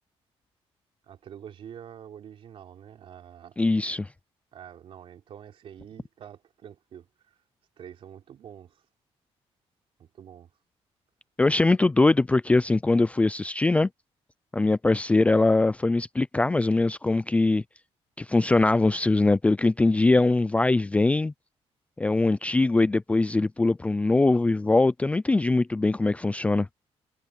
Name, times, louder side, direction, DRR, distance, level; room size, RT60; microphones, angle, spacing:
voice 1, 1.1-3.6 4.5-7.4 7.8-8.8 10.0-10.5, right 9 dB, 60° right, 3.4 m, -46 dB
voice 2, 3.6-4.1 11.4-13.9 14.5-17.6 18.2-21.3 22.0-26.7, left 2 dB, 10° left, 0.4 m, -22 dB
cardioid pair, 140°, 11 cm